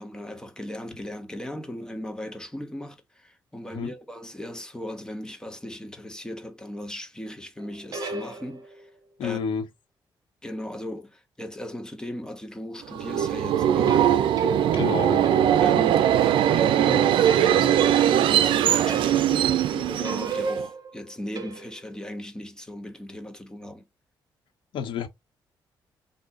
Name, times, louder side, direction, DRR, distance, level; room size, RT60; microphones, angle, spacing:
voice 1, 0.0-8.9 9.2-9.4 10.4-14.1 15.6-23.8, left 1 dB, 10° left, 1.2 m, -37 dB
sound 1, 7.6-8.9 13.9-16.3 17.3-18.5 18.9-19.4 19.7-22.0, right 3 dB, 50° right, 1.6 m, -36 dB
voice 2, 9.2-9.7 14.7-15.3 24.7-25.1, left 6 dB, 85° left, 1.3 m, -29 dB
Subway metro underground, 12.9-20.6, right 10 dB, 90° right, 0.5 m, -21 dB
4.1 x 2.7 x 3.6 m
cardioid pair, 90°, 8 cm